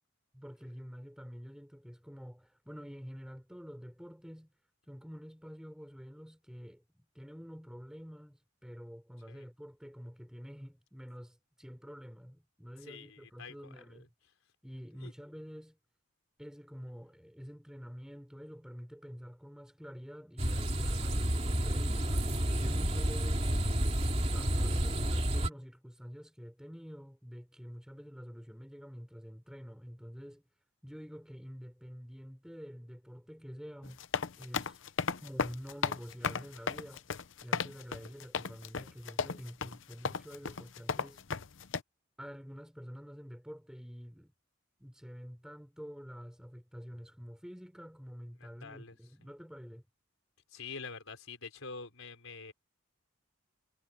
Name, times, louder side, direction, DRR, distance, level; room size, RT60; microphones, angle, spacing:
voice 1, 0.3-4.5 4.8-14.1 14.6-15.8 16.4-23.5 24.3-30.4 30.8-34.0 34.4-34.8 35.2-41.2 42.2-44.3 44.8-49.9, equal, 5° right, 4.5 m, -48 dB
voice 2, 12.9-14.1 15.0-15.1 48.4-48.9 50.5-52.5, left 4 dB, 90° left, 4.8 m, -46 dB
sound 1, 20.4-25.5, right 1 dB, 30° right, 2.7 m, -30 dB
sound 2, 33.8-41.8, left 5 dB, 65° left, 0.8 m, -35 dB
head